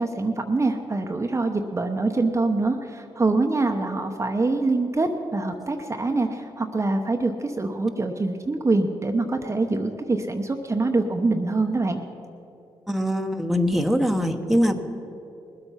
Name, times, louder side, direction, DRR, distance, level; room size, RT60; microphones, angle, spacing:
voice 1, 0.0-12.0, right 3 dB, 30° right, 4 dB, 0.9 m, -24 dB
voice 2, 12.9-14.7, equal, ahead, 4 dB, 1.1 m, -22 dB
19.5 x 8.1 x 5.7 m, 2.9 s
cardioid pair, 60°, 10 cm